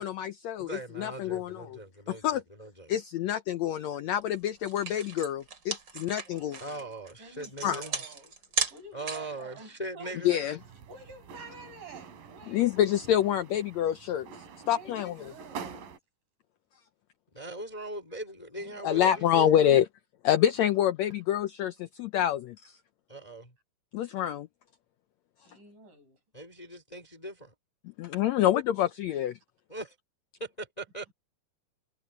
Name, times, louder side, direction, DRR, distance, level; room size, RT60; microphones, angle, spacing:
voice 1, 0.0-1.8 2.1-2.4 2.9-6.6 7.6-7.8 10.2-10.6 12.5-14.3 14.7-15.1 18.8-19.8 20.2-22.7 23.9-24.5 28.0-29.4, left 11 dB, 80° left, 1.6 m, -27 dB
voice 2, 0.6-2.9 6.6-7.9 8.9-10.5 17.3-19.6 23.1-23.5 26.3-27.5 29.7-29.9 30.4-31.1, right 1 dB, 10° left, 2.5 m, -40 dB
sound 1, 4.2-4.3 4.6-9.4, right 5 dB, 35° right, 2.5 m, -35 dB
voice 3, 6.2-6.7 7.2-8.3 8.7-10.2 10.9-12.7 13.8-13.9 14.6-15.9 25.4-26.2, right 3 dB, 65° right, 9.3 m, -49 dB
sound 2, 10.6-16.0, right 6 dB, 90° right, 4.3 m, -46 dB
omnidirectional pair, 3.9 m